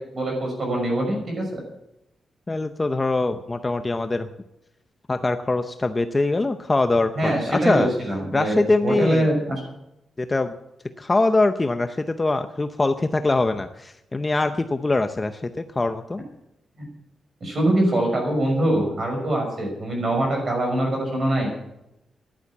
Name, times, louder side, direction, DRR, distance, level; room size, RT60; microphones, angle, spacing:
voice 1, 0.0-1.6 7.2-9.6 16.8-16.9 17.4-21.5, right 1 dB, 35° right, 1 dB, 6.1 m, -23 dB
voice 2, 2.5-4.3 5.1-7.9 8.3-9.3 10.2-10.6 11.0-16.2, left 2 dB, 15° left, 8 dB, 0.6 m, -23 dB
14.5 x 11.0 x 7.2 m, 0.87 s
wide cardioid pair, 170°, 0 cm